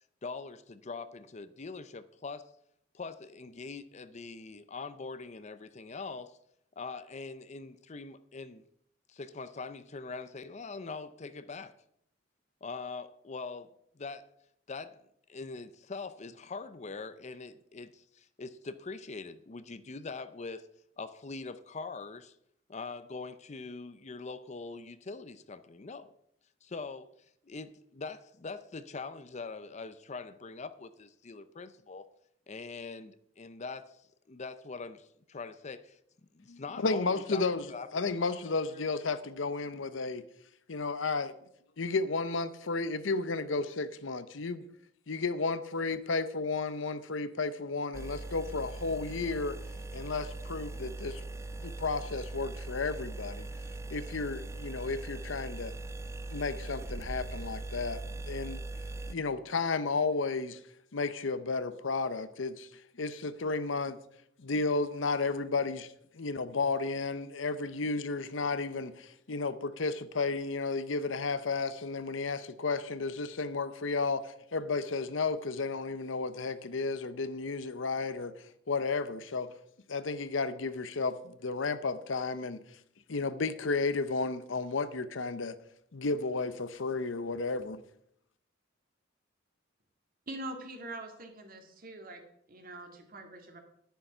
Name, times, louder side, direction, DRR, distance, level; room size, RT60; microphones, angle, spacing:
voice 1, 0.2-2.5 2.9-6.4 6.8-8.6 9.1-11.7 12.6-13.7 14.0-14.3 14.7-15.0 15.3-20.7 21.0-22.4 22.7-26.1 26.6-27.1 27.4-32.1 32.5-36.0 36.3-37.4 37.7-38.0, left 4 dB, 35° left, 0.6 m, -43 dB
voice 2, 36.5-37.7 37.9-40.3 40.7-41.3 41.8-44.6 45.1-49.6 49.9-51.2 51.6-53.5 53.9-55.7 56.3-58.6 59.1-60.6 60.9-64.0 64.4-65.9 66.1-78.3 78.7-79.5 79.9-82.6 83.1-85.6 85.9-87.8, left 3 dB, 75° left, 0.8 m, -33 dB
sound 1, 47.9-59.1, right 2 dB, 15° right, 0.4 m, -40 dB
voice 3, 90.3-92.2 92.5-93.6, right 1 dB, 50° right, 2.2 m, -43 dB
10.5 x 10.0 x 5.5 m
head